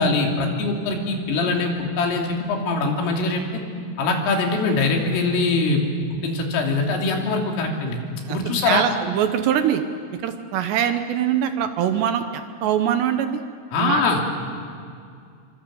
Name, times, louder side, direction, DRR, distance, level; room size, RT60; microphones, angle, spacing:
voice 1, 0.0-3.4 4.0-5.8 6.1-8.0 8.3-8.8 13.7-14.2, left 3 dB, 85° left, 1 dB, 5.6 m, -22 dB
voice 2, 8.3-9.8 10.2-13.4 13.8-14.0, right 9 dB, 75° right, 8 dB, 2.8 m, -23 dB
27.0 x 24.5 x 7.7 m, 2.3 s
omnidirectional pair, 5.7 m